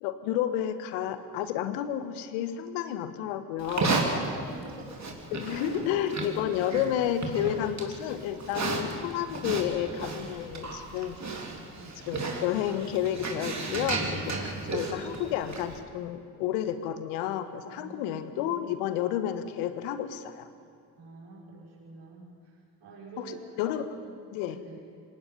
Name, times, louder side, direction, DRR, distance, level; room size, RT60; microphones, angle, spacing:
voice 1, 0.0-3.9 5.3-11.2 12.1-14.5 14.7-20.5 23.2-23.9 24.3-24.6, left 10 dB, 70° left, 11 dB, 1.4 m, -31 dB
Livestock farm animals working animals, 3.6-15.8, right 3 dB, 35° right, 3.6 m, -34 dB
voice 2, 3.6-4.9 5.6-6.9 8.9-9.3 11.7-12.1 14.4-14.7 17.6-18.6 21.0-24.9, right 3 dB, 55° right, -5 dB, 6.0 m, -47 dB
26.5 x 18.5 x 5.5 m, 2.2 s
hypercardioid pair, 45°, 50 cm